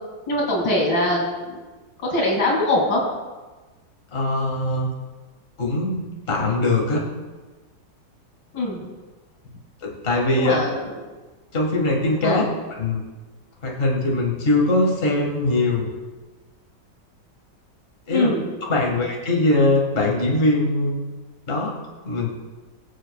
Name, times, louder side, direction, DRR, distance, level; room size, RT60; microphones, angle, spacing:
voice 1, 0.3-1.6 2.0-3.0 8.5-8.8 10.4-10.8 12.2-12.5 18.1-18.4, left 1 dB, 90° left, -3 dB, 3.3 m, -22 dB
voice 2, 4.1-4.9 5.6-7.1 9.8-10.6 11.5-12.4 12.8-13.0 13.6-15.9 18.1-18.3 18.6-21.0 21.5-21.7 22.0-22.3, left 2 dB, 35° left, -1 dB, 1.8 m, -21 dB
22.5 x 7.5 x 2.3 m, 1.2 s
omnidirectional pair, 1.9 m